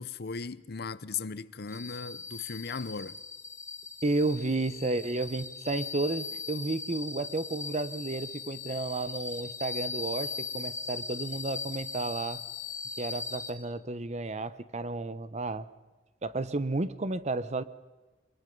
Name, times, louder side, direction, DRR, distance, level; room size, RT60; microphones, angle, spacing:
voice 1, 0.0-3.2, left 5 dB, 55° left, 0.7 m, -37 dB
sound 1, 1.7-13.5, left 5 dB, 15° left, 2.1 m, -39 dB
voice 2, 4.0-12.4 13.0-15.7 16.2-17.6, right 2 dB, 35° right, 0.8 m, -32 dB
23.5 x 22.5 x 5.3 m
head